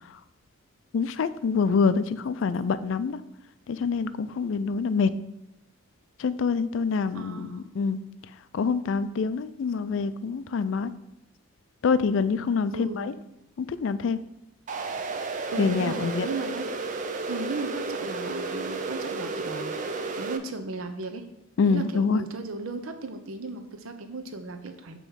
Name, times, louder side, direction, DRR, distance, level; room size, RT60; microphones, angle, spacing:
voice 1, 0.9-3.2 3.7-5.1 6.2-8.0 8.5-10.9 11.8-13.1 13.6-14.2 15.6-16.3 21.6-22.2, left 5 dB, 65° left, 13 dB, 0.3 m, -26 dB
voice 2, 7.1-7.7 12.7-13.1 15.5-16.9 17.3-21.2 21.6-25.0, right 3 dB, 80° right, 7 dB, 0.7 m, -36 dB
sound 1, 14.7-20.4, right 3 dB, 35° right, 0.4 m, -32 dB
6.8 x 3.1 x 5.6 m, 0.90 s
head